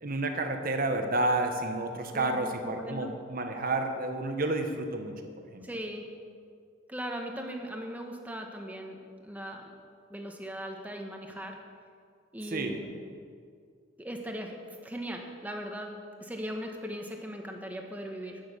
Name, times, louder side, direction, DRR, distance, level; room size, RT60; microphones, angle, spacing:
voice 1, 0.0-5.1 5.5-5.7 12.5-12.8, right 2 dB, 45° right, 5 dB, 1.2 m, -30 dB
voice 2, 2.1-3.1 5.6-6.0 6.9-9.6 10.1-11.6 12.3-12.9 14.0-15.9 16.2-18.4, equal, 10° right, 2 dB, 1.2 m, -39 dB
10.5 x 9.4 x 6.8 m, 2.2 s
head